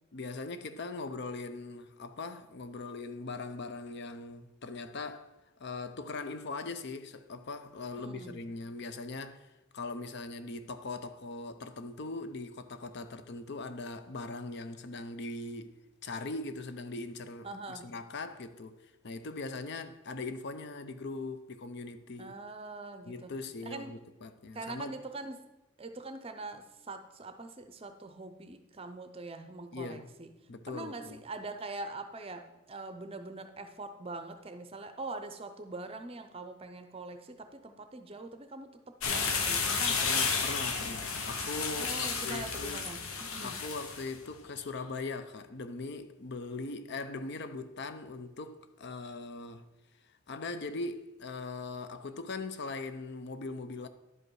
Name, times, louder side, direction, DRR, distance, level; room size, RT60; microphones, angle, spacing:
voice 1, 0.1-15.8 16.0-22.4 23.1-24.9 29.7-30.1 30.5-31.2 39.8-42.9 43.4-49.7 50.3-53.9, left 3 dB, 50° left, 0.5 m, -40 dB
voice 2, 8.0-8.4 17.4-17.9 22.2-23.9 24.5-25.5 25.8-30.3 30.7-40.2 41.8-43.6, right 3 dB, 25° right, 0.6 m, -43 dB
sound 1, 39.0-44.1, left 5 dB, 75° left, 1.0 m, -32 dB
11.0 x 5.2 x 4.7 m
head